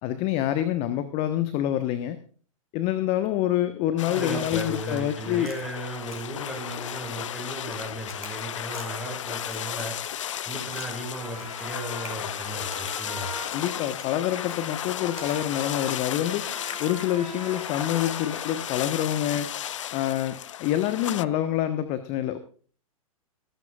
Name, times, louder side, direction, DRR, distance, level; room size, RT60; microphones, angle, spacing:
voice 1, 0.0-2.2 2.7-5.5 13.5-16.5 16.8-19.5 19.9-22.4, left 12 dB, 35° left, 11 dB, 1.2 m, -26 dB
sound 1, 4.0-21.2, left 11 dB, 60° left, 0.5 m, -34 dB
voice 2, 4.1-10.0 10.4-13.3, right 1 dB, ahead, -1 dB, 7.1 m, -35 dB
Crack, 4.5-5.0 5.4-5.8 6.1-6.5 6.8-7.8 8.1-8.9 9.4-10.9 11.2-11.7 12.0-12.2 12.7-12.9 13.3-13.7 14.0-14.1 14.5-14.6 15.2-15.4, left 1 dB, 80° left, 5.1 m, -46 dB
Trumpet, 10.7-19.1, right 2 dB, 90° right, 5.5 m, -43 dB
23.0 x 12.5 x 2.4 m, 0.42 s
figure-of-eight pair, 100°, 18 cm